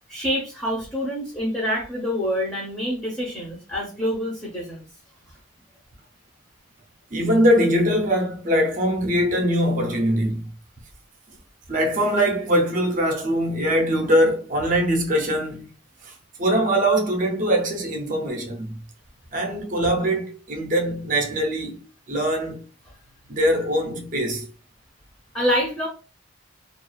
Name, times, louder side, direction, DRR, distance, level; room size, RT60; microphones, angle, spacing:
voice 1, 0.1-4.9 25.3-25.9, equal, 10° left, 0.6 m, -26 dB
voice 2, 7.1-10.5 11.7-15.7 16.0-16.1 16.4-18.7 19.3-21.8 22.1-22.6 23.3-24.5, equal, 40° right, 0.5 m, -22 dB
2.4 x 2.3 x 2.2 m
head